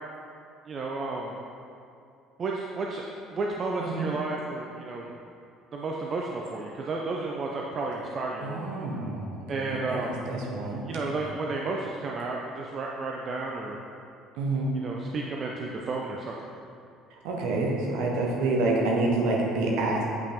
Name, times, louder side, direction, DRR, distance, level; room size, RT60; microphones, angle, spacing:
voice 1, 0.7-1.4 2.4-3.0 3.3-5.1 5.7-8.7 9.5-10.1 10.9-13.8 14.7-16.3, right 3 dB, 40° right, -1 dB, 0.5 m, -32 dB
voice 2, 8.4-10.8 14.4-14.7 17.2-20.0, right 2 dB, 60° right, -2 dB, 1.1 m, -28 dB
8.1 x 5.7 x 2.9 m, 2.5 s
figure-of-eight pair, 55°, 0 cm